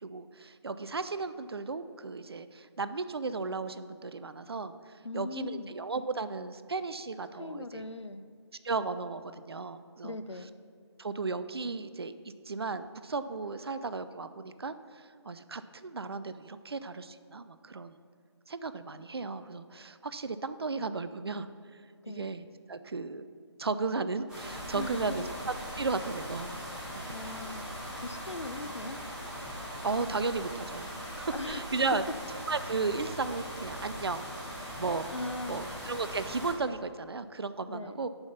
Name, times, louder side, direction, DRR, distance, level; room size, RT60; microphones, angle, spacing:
voice 1, 0.0-4.7 5.1-7.9 8.6-10.2 11.0-18.0 18.5-21.5 22.1-23.3 23.6-26.5 26.9-27.1 29.8-30.9 31.2-32.0 32.3-34.3 34.8-35.1 35.5-38.1, right 4 dB, 60° right, 12 dB, 0.5 m, -35 dB
voice 2, 5.0-5.7 7.4-8.2 10.0-10.5 22.0-22.4 24.7-25.3 27.1-27.7 28.0-29.0 31.3-31.6 31.9-32.0 35.1-35.7 37.7-38.0, left 2 dB, 85° left, 11 dB, 0.6 m, -39 dB
sound 1, 24.3-36.5, equal, 5° right, 1.8 m, -40 dB
7.0 x 5.7 x 6.7 m, 2.2 s
figure-of-eight pair, 150°, 15 cm